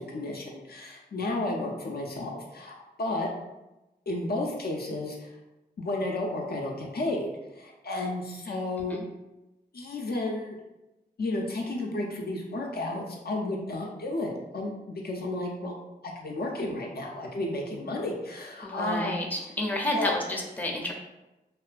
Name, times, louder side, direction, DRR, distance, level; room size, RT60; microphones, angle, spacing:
voice 1, 0.0-3.3 4.1-5.3 5.8-9.0 9.7-10.6 11.2-15.7 16.0-19.2 19.9-20.1, left 2 dB, 60° left, -1 dB, 0.4 m, -32 dB
voice 2, 18.6-20.9, left 1 dB, 10° left, 0 dB, 0.5 m, -30 dB
2.4 x 2.2 x 2.4 m, 1.0 s
cardioid pair, 45°, 18 cm